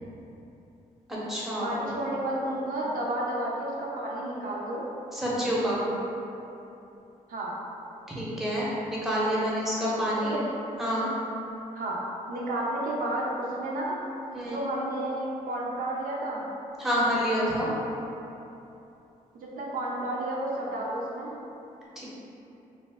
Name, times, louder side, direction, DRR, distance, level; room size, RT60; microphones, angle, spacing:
voice 1, 1.1-1.7 5.1-5.8 8.1-10.4 10.8-11.1 14.3-14.6 16.8-17.7 22.0-22.1, equal, ahead, -8 dB, 0.8 m, -28 dB
voice 2, 1.6-4.9 7.3-7.5 10.2-10.5 11.7-12.0 12.3-14.0 14.4-16.4 19.4-21.3, right 1 dB, 70° right, -4 dB, 0.5 m, -31 dB
2.6 x 2.1 x 3.4 m, 2.9 s
cardioid pair, 90°, 15 cm